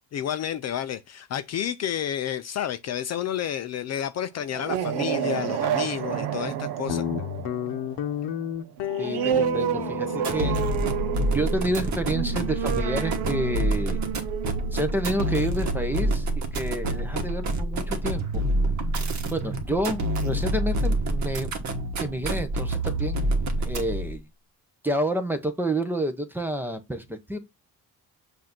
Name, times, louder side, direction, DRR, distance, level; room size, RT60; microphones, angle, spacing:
voice 1, 0.1-7.0, left 10 dB, 40° left, 0.4 m, -30 dB
sound 1, 4.4-15.6, right 10 dB, 75° right, 0.8 m, -30 dB
Guitar, 6.9-13.6, left 10 dB, 75° left, 0.8 m, -34 dB
voice 2, 9.0-10.6 11.3-14.0 14.7-18.4 19.3-24.3 24.8-27.4, right 1 dB, 5° right, 0.6 m, -29 dB
sound 2, 10.2-24.2, right 1 dB, 45° right, 1.3 m, -27 dB
7.5 x 2.7 x 5.8 m
cardioid pair, 165°, 41 cm